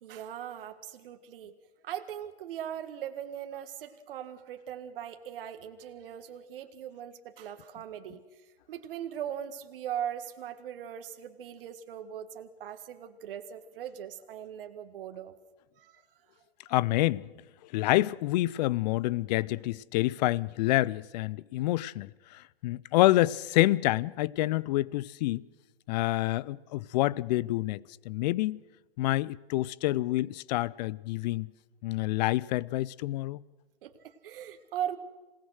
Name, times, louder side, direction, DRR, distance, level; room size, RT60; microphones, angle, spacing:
voice 1, 0.0-1.6 1.8-15.3 15.8-16.2 33.8-35.0, right 10 dB, 60° right, 1.8 m, -40 dB
voice 2, 16.7-17.3 17.7-25.4 25.9-28.6 29.0-31.5 31.8-33.4, left 17 dB, 40° left, 0.6 m, -27 dB
27.0 x 18.5 x 6.4 m
hypercardioid pair, 120°, 31 cm